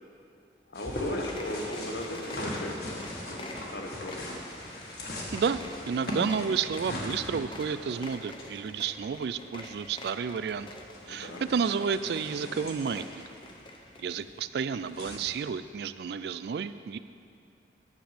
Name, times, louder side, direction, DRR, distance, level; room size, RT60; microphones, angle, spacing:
voice 1, 0.7-4.4 11.0-11.4, left 1 dB, 75° left, 2 dB, 1.2 m, -37 dB
sound 1, 0.7-15.2, left 1 dB, 60° left, 1.5 m, -40 dB
sound 2, 1.1-14.2, left 2 dB, 30° left, 0.7 m, -47 dB
voice 2, 5.9-10.7 11.1-13.2 14.0-17.0, right 6 dB, 65° right, 13 dB, 0.3 m, -31 dB
10.5 x 7.3 x 5.0 m, 2.4 s
head